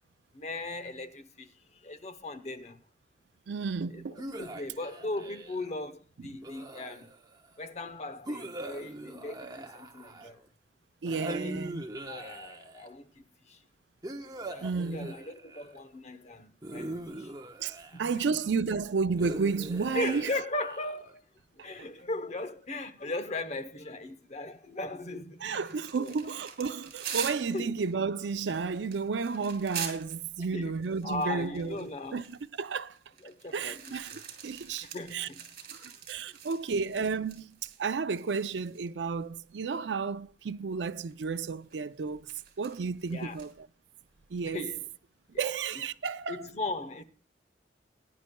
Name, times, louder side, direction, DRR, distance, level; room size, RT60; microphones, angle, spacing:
voice 1, 0.3-2.8 3.9-7.1 7.6-10.4 11.0-11.7 12.1-13.6 14.2-17.3 17.9-18.4 19.9-21.2 21.5-26.2 27.5-27.7 30.5-32.2 33.2-34.2 34.8-36.4 43.1-43.4 44.4-44.8 45.3-45.5 46.3-47.0, left 2 dB, 40° left, 0.9 m, -38 dB
voice 2, 3.5-4.3 11.0-11.8 14.6-15.1 17.6-20.3 25.4-33.0 33.5-35.3 36.1-42.3 42.6-43.5 44.3-44.7 45.4-46.5, right 5 dB, 85° right, 0.5 m, -32 dB
sound 1, 4.2-5.7 6.4-7.4 8.3-10.5 11.1-12.9 14.0-15.8 16.6-18.3 19.2-21.1, right 1 dB, 25° right, 1.0 m, -41 dB
sound 2, 25.5-30.2 30.8-37.9 38.1-38.9 39.7-39.8 40.8-41.1 41.7-43.5, right 8 dB, 60° right, 3.1 m, -44 dB
21.5 x 10.5 x 2.3 m
head